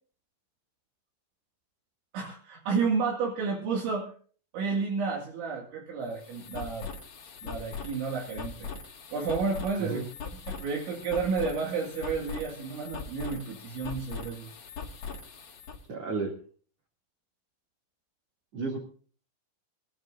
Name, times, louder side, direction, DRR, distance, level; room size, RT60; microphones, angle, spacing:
voice 1, 2.1-4.1 4.5-6.9 7.4-8.7 9.1-10.0 10.5-14.5, right 5 dB, 70° right, -1 dB, 4.5 m, -31 dB
sound 1, 6.0-15.8, left 5 dB, 50° left, 4.0 m, -41 dB
voice 2, 15.9-16.3 18.5-18.8, right 4 dB, 35° right, -4 dB, 3.3 m, -32 dB
24.5 x 13.5 x 2.7 m, 0.43 s
omnidirectional pair, 5.7 m